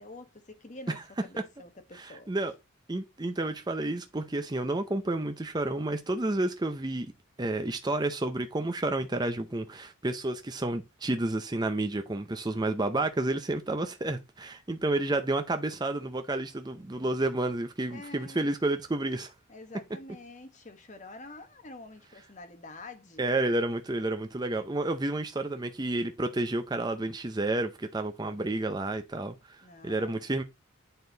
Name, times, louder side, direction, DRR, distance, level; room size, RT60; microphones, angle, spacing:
voice 1, 0.0-2.3 17.9-18.6 19.5-23.3 29.6-30.2, left 2 dB, 35° left, 1.2 m, -47 dB
voice 2, 1.9-2.5 2.9-7.1 7.4-19.3 23.2-29.6 29.8-30.4, right 2 dB, 20° right, 0.6 m, -30 dB
8.5 x 4.4 x 4.0 m
head